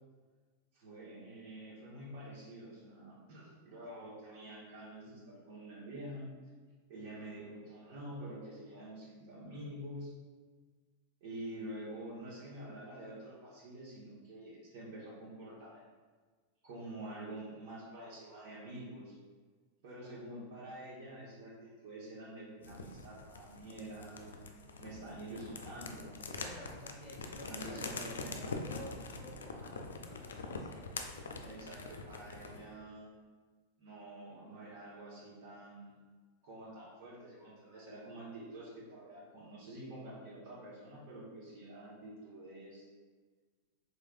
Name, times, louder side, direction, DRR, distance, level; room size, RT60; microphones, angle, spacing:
voice 1, 0.7-6.3 6.9-10.1 11.2-15.8 16.6-19.2 19.8-24.4 24.8-26.1 27.5-28.5 31.4-33.1 33.8-36.0 36.4-42.8, right 1 dB, 50° right, -6 dB, 1.3 m, -47 dB
sound 1, 22.6-32.7, left 3 dB, 65° left, 0.4 m, -44 dB
voice 2, 26.3-31.0, left 2 dB, ahead, -7 dB, 1.4 m, -52 dB
4.6 x 3.4 x 2.5 m, 1.4 s
figure-of-eight pair, 90°, 0 cm